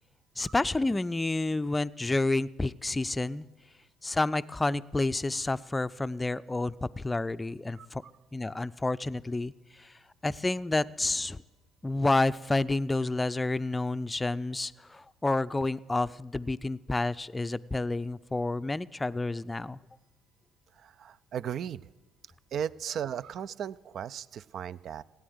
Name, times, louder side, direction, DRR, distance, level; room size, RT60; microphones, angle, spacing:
voice 1, 0.4-3.4 4.0-8.0 8.3-11.4 11.8-19.8, left 2 dB, 15° left, 16 dB, 0.5 m, -29 dB
voice 2, 7.8-8.1 20.8-21.9 22.5-25.0, right 9 dB, 50° right, 20 dB, 0.4 m, -36 dB
17.5 x 9.2 x 7.9 m, 1.2 s
figure-of-eight pair, 50°, 0 cm